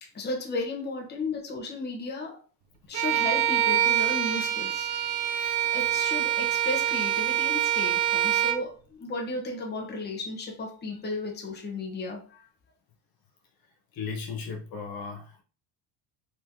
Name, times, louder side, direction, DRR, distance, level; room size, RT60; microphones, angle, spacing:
voice 1, 0.0-2.4 2.9-4.9 5.7-12.5, left 2 dB, 20° left, 0 dB, 1.0 m, -34 dB
Bowed string instrument, 2.9-8.7, right 11 dB, 65° right, 0.6 m, -25 dB
voice 2, 13.6-15.4, left 5 dB, 50° left, 0 dB, 0.9 m, -37 dB
3.8 x 3.1 x 2.8 m, 0.38 s
cardioid pair, 125°, 45 cm